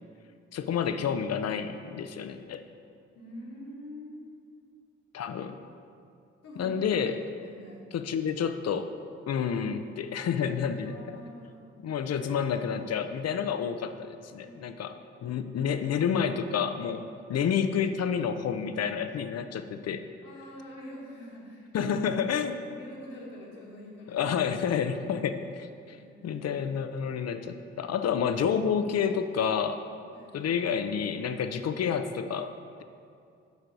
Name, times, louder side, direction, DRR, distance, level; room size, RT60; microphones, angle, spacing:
voice 1, 0.5-2.6 5.1-5.6 6.6-7.2 7.9-9.0 9.3-11.0 11.8-14.9 15.2-20.0 21.7-22.5 24.1-26.0 26.2-29.8 30.3-32.5, left 7 dB, 50° left, 9 dB, 0.6 m, -29 dB
voice 2, 3.1-4.4 6.4-6.8 7.4-7.8 10.9-11.6 14.4-14.6 20.2-24.3 25.9-26.8 30.1-30.5, left 1 dB, 70° left, -3 dB, 1.7 m, -46 dB
8.0 x 5.3 x 4.7 m, 2.4 s
hypercardioid pair, 40°, 33 cm